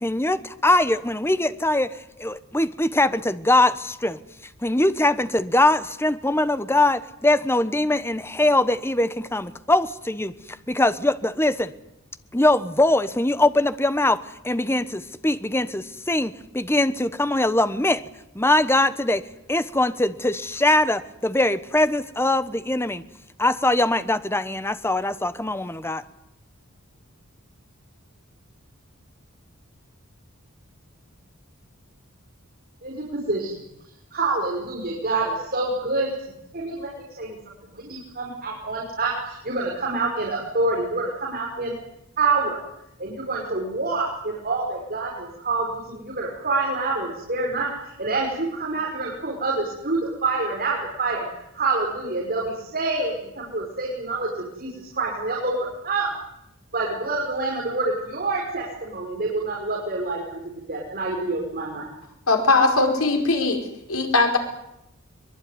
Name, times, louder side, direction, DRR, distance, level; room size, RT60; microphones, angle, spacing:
voice 1, 0.0-4.2 4.6-11.7 12.3-18.0 18.3-19.2 19.5-23.0 23.4-26.0, left 1 dB, 10° left, 13 dB, 1.1 m, -22 dB
voice 2, 32.8-33.5 34.1-36.1 36.5-36.9 37.2-37.4 37.7-41.7 42.2-42.6 43.0-51.3 51.5-55.6 55.8-56.1 56.7-60.4 60.7-61.9, right 3 dB, 45° right, -2 dB, 5.5 m, -27 dB
voice 3, 62.3-63.6 63.9-64.4, left 3 dB, 80° left, 4 dB, 5.2 m, -19 dB
23.5 x 22.5 x 9.5 m, 0.84 s
head